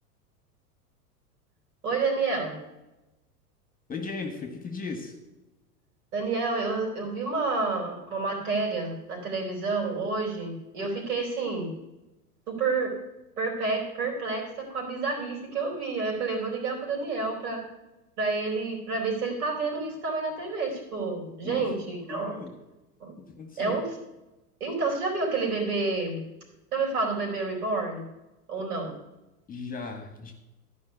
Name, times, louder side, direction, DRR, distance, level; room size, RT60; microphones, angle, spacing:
voice 1, 1.8-2.6 6.1-11.7 12.5-12.9 13.4-17.7 18.2-22.4 23.0-23.1 23.6-23.8 24.6-26.2 26.7-28.0 28.5-28.9, right 3 dB, 75° right, 0 dB, 4.3 m, -29 dB
voice 2, 3.9-5.1 21.4-21.7 22.1-22.5 23.4-23.8 29.5-30.3, left 4 dB, 20° left, 4 dB, 1.7 m, -36 dB
12.5 x 5.2 x 6.8 m, 0.99 s
hypercardioid pair, 95°, 46 cm